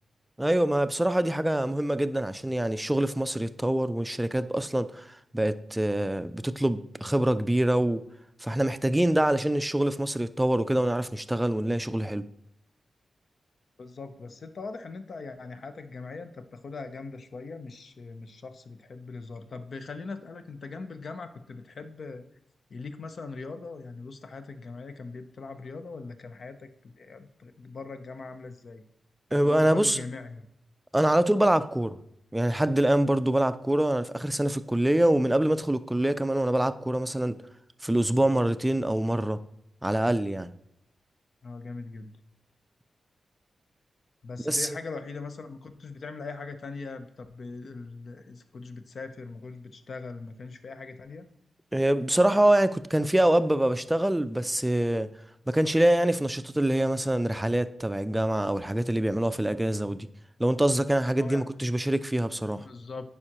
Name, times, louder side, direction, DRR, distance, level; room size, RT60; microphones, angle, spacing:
voice 1, 0.4-5.0 5.3-8.0 8.4-12.2 29.3-30.0 30.9-32.0 32.3-37.4 37.8-39.4 39.8-40.5 44.5-44.7 51.7-55.1 55.5-60.1 60.4-62.6, right 1 dB, 10° right, 0.4 m, -25 dB
voice 2, 13.8-22.3 22.7-28.8 29.4-30.5 41.4-42.2 44.2-51.3 61.2-61.5 62.3-63.1, left 4 dB, 60° left, 0.6 m, -41 dB
9.5 x 4.9 x 2.9 m
cardioid pair, 75°, 0 cm